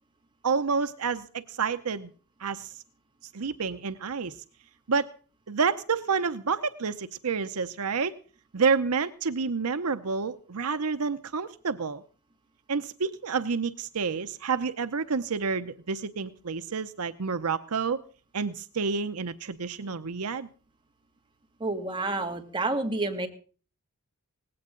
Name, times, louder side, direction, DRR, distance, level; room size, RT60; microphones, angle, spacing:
voice 1, 0.4-2.1 2.4-2.7 3.3-4.4 4.9-5.1 5.5-8.1 8.5-12.0 12.7-18.0 18.3-20.5, right 5 dB, 70° right, 11 dB, 0.8 m, -29 dB
voice 2, 21.6-23.3, right 2 dB, 20° right, 4 dB, 2.4 m, -29 dB
19.0 x 16.5 x 3.8 m, 0.39 s
head